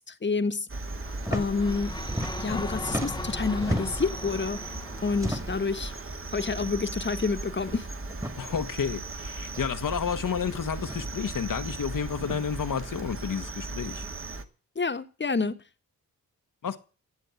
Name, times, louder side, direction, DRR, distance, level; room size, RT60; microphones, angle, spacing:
voice 1, 0.1-0.7 1.3-1.9 2.4-4.6 5.0-5.9 6.3-7.9 14.7-15.6, left 4 dB, 30° left, 1.7 m, -28 dB
Cricket, 0.7-14.4, right 3 dB, 35° right, 2.1 m, -37 dB
sound 1, 1.0-7.2, left 2 dB, 10° left, 1.2 m, -39 dB
sound 2, 1.2-1.5 1.7-2.6 2.8-4.1 5.1-5.7 6.6-6.8 7.1-7.2 8.1-8.4 9.5-9.6 10.8-11.1 12.2-12.4, equal, 10° right, 2.2 m, -33 dB
voice 2, 8.4-14.1 16.6-16.8, left 7 dB, 60° left, 1.6 m, -31 dB
17.0 x 7.5 x 8.4 m
cardioid pair, 60°, 36 cm